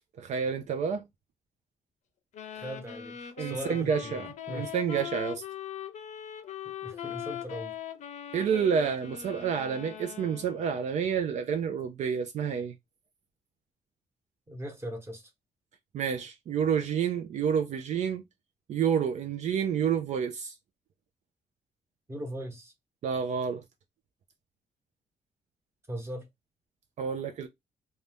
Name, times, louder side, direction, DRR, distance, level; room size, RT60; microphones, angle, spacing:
voice 1, 0.2-1.0 3.4-5.4 8.3-12.7 15.9-18.2 18.7-20.5 23.0-23.6 27.0-27.5, right 7 dB, 65° right, 0.5 m, -29 dB
sound 1, 2.3-10.7, left 9 dB, 70° left, 0.6 m, -41 dB
voice 2, 2.5-4.2 4.5-4.7 6.8-7.7 14.5-15.3 22.1-22.7 25.9-26.3, equal, 20° right, 1.0 m, -39 dB
2.6 x 2.3 x 3.3 m
cardioid pair, 115°, 13 cm